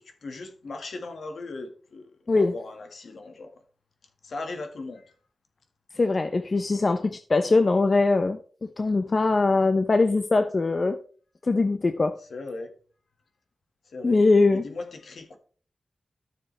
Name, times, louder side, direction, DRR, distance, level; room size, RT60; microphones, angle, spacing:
voice 1, 0.0-3.5 4.2-5.1 12.3-12.7 13.9-14.2 14.5-15.4, left 3 dB, 70° left, 1.6 m, -38 dB
voice 2, 6.0-8.4 8.8-11.0 11.4-12.2 14.0-14.7, left 3 dB, 40° left, 0.6 m, -22 dB
13.0 x 6.8 x 3.3 m
wide cardioid pair, 110°, 0 cm